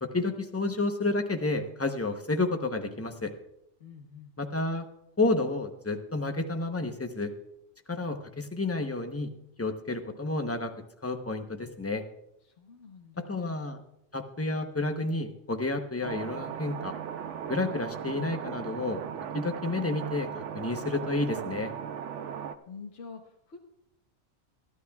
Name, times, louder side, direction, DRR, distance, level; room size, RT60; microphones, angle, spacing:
voice 1, 0.0-3.3 4.4-4.8 5.2-7.3 7.9-9.3 9.6-10.7 11.0-12.0 13.3-13.8 14.1-16.9 17.5-19.0 19.3-21.7, left 2 dB, 15° left, 5 dB, 0.8 m, -30 dB
voice 2, 3.8-4.3 12.4-13.7 22.7-23.6, left 5 dB, 65° left, 1 dB, 1.4 m, -47 dB
sound 1, 16.0-22.5, right 8 dB, 80° right, 1.0 m, -37 dB
22.0 x 12.5 x 2.4 m, 0.81 s
omnidirectional pair, 1.2 m